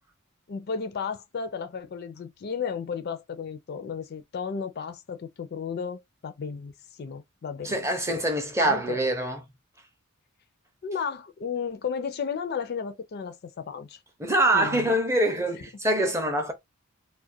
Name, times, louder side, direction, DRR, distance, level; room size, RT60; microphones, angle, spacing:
voice 1, 0.5-8.3 8.6-9.0 10.8-14.0 14.5-14.9 15.5-15.6, left 6 dB, 50° left, 0.4 m, -34 dB
voice 2, 7.6-9.4 14.2-16.5, right 1 dB, 15° right, 0.5 m, -24 dB
2.3 x 2.1 x 2.6 m
head